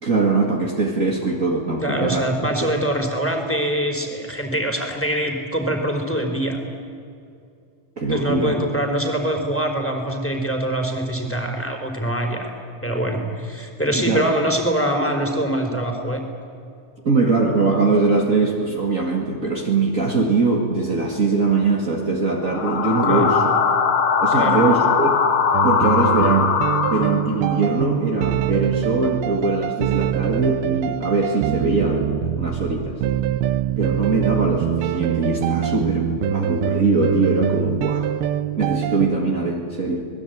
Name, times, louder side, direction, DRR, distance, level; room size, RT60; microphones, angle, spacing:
voice 1, 0.0-2.5 8.0-8.6 13.9-14.3 17.0-23.5 24.2-25.2 25.6-26.6 26.9-33.0 33.7-38.1 38.6-40.1, right 3 dB, 50° right, 0 dB, 0.9 m, -22 dB
voice 2, 1.8-6.6 8.1-12.5 12.8-16.2 23.1-23.3 24.3-24.6, right 1 dB, 5° left, 3 dB, 3.3 m, -24 dB
sound 1, 22.4-27.5, left 6 dB, 85° left, 1.1 m, -20 dB
sound 2, 25.5-39.1, right 10 dB, 75° right, 2.5 m, -24 dB
26.5 x 20.5 x 9.3 m, 2.5 s
omnidirectional pair, 5.0 m